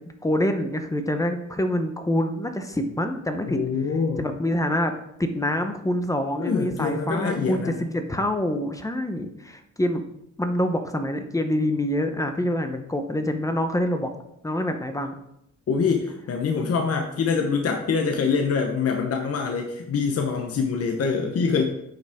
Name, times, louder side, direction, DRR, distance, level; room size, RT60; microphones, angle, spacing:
voice 1, 0.2-3.6 4.2-4.9 5.2-10.0 10.4-14.1 14.4-15.1, left 1 dB, 10° left, 6 dB, 0.8 m, -26 dB
voice 2, 3.5-4.3 6.4-7.9 15.7-21.6, left 5 dB, 50° left, 3 dB, 0.9 m, -25 dB
8.9 x 5.3 x 3.5 m, 0.80 s
cardioid pair, 110°, 31 cm